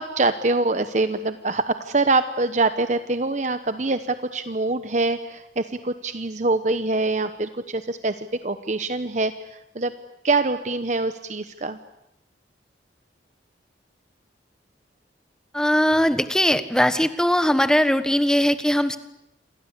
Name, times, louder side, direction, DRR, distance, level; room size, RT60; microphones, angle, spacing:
voice 1, 0.0-9.9 10.2-11.8, right 3 dB, 40° right, 10 dB, 1.0 m, -24 dB
voice 2, 15.5-19.0, equal, 5° left, 11 dB, 1.3 m, -20 dB
28.5 x 23.0 x 8.3 m, 0.84 s
head